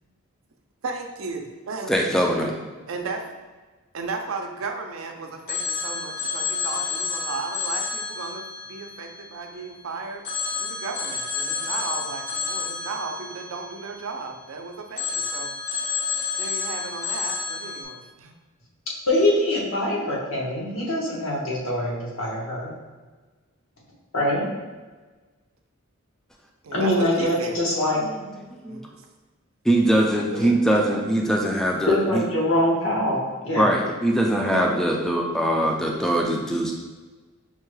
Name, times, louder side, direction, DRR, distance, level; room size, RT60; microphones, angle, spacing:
voice 1, 0.8-2.1 2.9-3.2 3.9-10.3 10.6-16.0 16.4-18.3 26.6-27.6 28.7-28.8 30.3-30.6, right 3 dB, 75° right, 3 dB, 0.5 m, -34 dB
voice 2, 1.9-2.5 28.5-28.9 29.6-32.2 33.6-36.7, right 1 dB, ahead, 0 dB, 0.3 m, -22 dB
Telephone, 5.5-9.8 10.2-14.5 15.0-17.8, left 5 dB, 50° left, 0.7 m, -30 dB
voice 3, 19.1-22.7 24.1-24.5 26.7-28.0 31.9-33.7 34.5-34.6, left 1 dB, 75° left, -4 dB, 1.2 m, -23 dB
5.5 x 2.2 x 3.1 m, 1.3 s
head